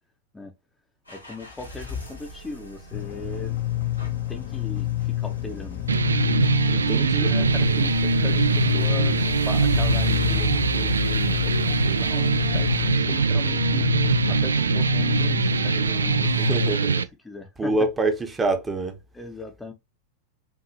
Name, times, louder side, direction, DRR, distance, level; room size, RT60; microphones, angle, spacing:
sound 1, 1.1-13.0, left 5 dB, 85° left, 1.9 m, -37 dB
voice 1, 1.1-3.6 4.3-5.8 6.8-13.9 14.3-17.9 19.1-19.7, left 2 dB, 10° left, 0.7 m, -38 dB
sound 2, 2.9-16.8, left 15 dB, 45° left, 0.6 m, -28 dB
sound 3, 5.9-17.0, right 5 dB, 75° right, 0.3 m, -23 dB
voice 2, 6.7-7.4 16.3-16.9 17.6-19.0, right 2 dB, 15° right, 0.9 m, -26 dB
5.7 x 2.7 x 2.8 m
figure-of-eight pair, 90°, 0 cm